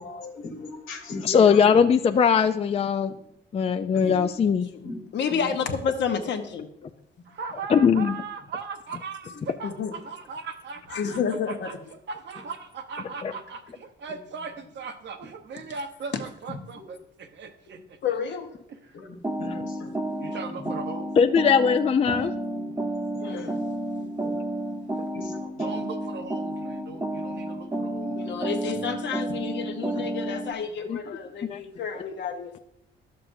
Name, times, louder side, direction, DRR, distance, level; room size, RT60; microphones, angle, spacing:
voice 1, 0.0-1.9 3.9-4.3 4.8-5.6 8.4-8.5 8.9-9.5 11.0-11.1 12.3-12.5 13.0-13.4 14.1-14.8 15.5-15.6 16.5-17.0 17.7-17.8 18.9-21.1 21.6-21.7 22.5-22.8 23.1-23.7 24.0-26.1 26.9-27.3 27.8-27.9 30.0-30.1 31.2-31.6, left 2 dB, 85° left, 1 dB, 1.6 m, -41 dB
voice 2, 1.2-3.1 3.5-4.7 7.7-8.2 13.2-13.3 21.2-22.3 30.8-31.0 31.4-31.6, left 6 dB, 30° left, 8 dB, 0.4 m, -20 dB
voice 3, 5.1-6.7 8.8-9.0 9.2-10.0 10.9-11.8 16.1-16.2 18.0-18.5 23.2-23.6 28.1-32.6, left 6 dB, 65° left, 6 dB, 1.1 m, -30 dB
voice 4, 7.4-9.7 10.1-11.0 12.1-13.6 14.0-16.1 16.4-17.8 20.2-21.1 25.6-28.2, right 5 dB, 65° right, 7 dB, 0.9 m, -38 dB
sound 1, 19.2-30.5, right 1 dB, 15° right, 0.9 m, -31 dB
11.5 x 6.7 x 2.7 m, 0.76 s
cardioid pair, 90°, 20 cm